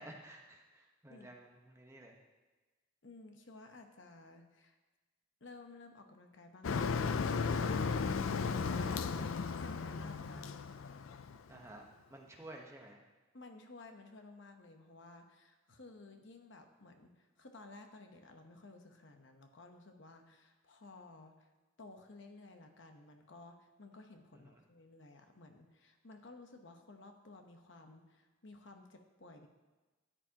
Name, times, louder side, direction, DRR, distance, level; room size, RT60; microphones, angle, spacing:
voice 1, 0.0-2.2 8.3-9.0 11.5-11.8 12.1-13.0 24.3-24.5, right 1 dB, 15° right, 0 dB, 1.0 m, -53 dB
voice 2, 3.0-4.8 5.4-8.0 8.3-9.0 9.3-10.6 13.3-21.5 21.8-29.5, left 3 dB, 65° left, 5 dB, 1.0 m, -54 dB
Motor vehicle (road), 6.6-11.6, left 5 dB, 80° left, 0.5 m, -35 dB
13.0 x 10.0 x 2.9 m, 1.2 s
head